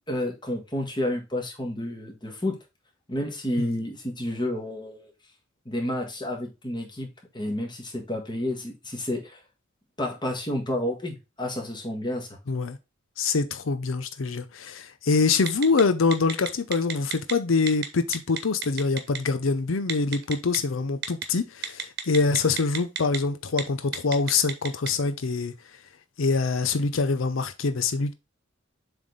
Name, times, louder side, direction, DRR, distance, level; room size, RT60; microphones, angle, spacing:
voice 1, 0.1-2.6 3.1-5.1 5.7-7.1 7.3-9.4 10.0-12.3, left 1 dB, 25° left, 1.6 m, -30 dB
voice 2, 12.5-12.8 13.2-25.5 26.2-28.1, left 4 dB, 90° left, 0.6 m, -25 dB
Telephone, 15.5-15.8 16.1-17.3 17.7-17.9 18.1-19.2 19.9-20.6 21.0-21.2 21.6-23.2 23.5-23.6 23.9-24.9, right 9 dB, 55° right, 1.1 m, -30 dB
7.3 x 3.5 x 3.8 m
head